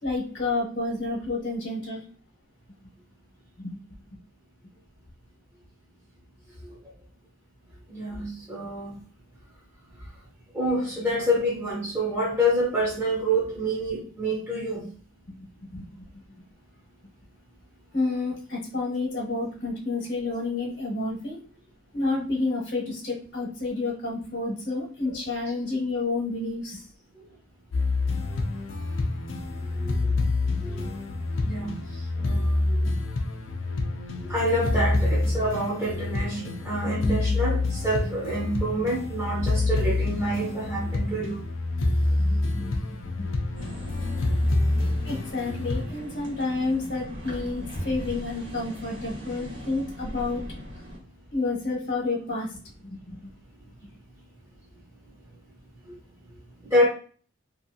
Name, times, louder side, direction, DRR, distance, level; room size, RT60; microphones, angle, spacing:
voice 1, 0.0-2.0 3.6-3.8 15.3-16.2 17.9-21.4 21.9-26.8 35.4-35.5 42.2-43.4 45.0-50.5 51.3-53.3, left 3 dB, 55° left, -4 dB, 1.0 m, -30 dB
voice 2, 7.9-9.0 10.5-14.9 25.1-25.2 25.4-25.5 29.7-30.2 30.6-30.9 31.4-32.8 34.2-41.4 55.9-56.0 56.6-56.9, equal, 10° right, -5 dB, 0.7 m, -27 dB
sound 1, 27.7-45.8, left 2 dB, 75° left, 0.5 m, -27 dB
sound 2, 43.6-51.0, equal, 65° right, 1.4 m, -38 dB
2.7 x 2.6 x 2.7 m, 0.40 s
head